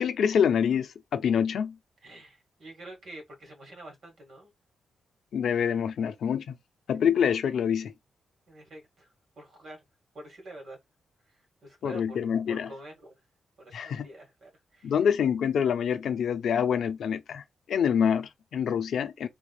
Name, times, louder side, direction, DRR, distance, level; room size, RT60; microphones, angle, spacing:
voice 1, 0.0-1.8 5.3-6.6 6.9-7.9 11.8-12.7 13.7-14.1 14.8-17.4 17.7-19.3, left 8 dB, 65° left, 0.5 m, -26 dB
voice 2, 2.0-4.5 8.5-9.1 9.4-9.8 10.1-10.8 11.3-12.2 12.5-13.1 13.6-14.9, right 1 dB, 50° right, 1.8 m, -47 dB
3.4 x 3.3 x 2.3 m
wide cardioid pair, 170°, 0 cm